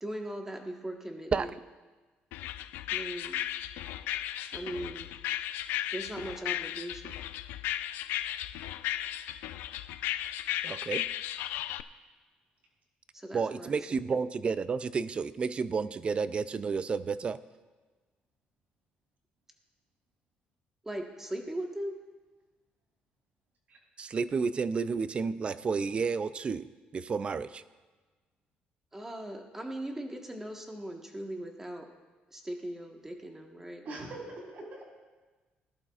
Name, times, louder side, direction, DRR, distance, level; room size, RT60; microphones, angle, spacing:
voice 1, 0.0-1.5 2.9-3.4 4.5-5.1 5.9-7.2 13.1-14.2 20.8-21.9 28.9-31.9 32.3-34.1, right 1 dB, 10° right, 2 dB, 1.4 m, -39 dB
sound 1, 2.3-11.8, left 13 dB, 90° left, 0.4 m, -35 dB
voice 2, 10.6-11.0 13.3-17.4 24.0-26.7 26.9-27.5, right 5 dB, 35° right, 15 dB, 0.4 m, -31 dB
voice 3, 33.9-34.8, right 2 dB, 55° right, -1 dB, 3.6 m, -42 dB
18.5 x 11.5 x 2.5 m, 1.3 s
cardioid pair, 115°, 3 cm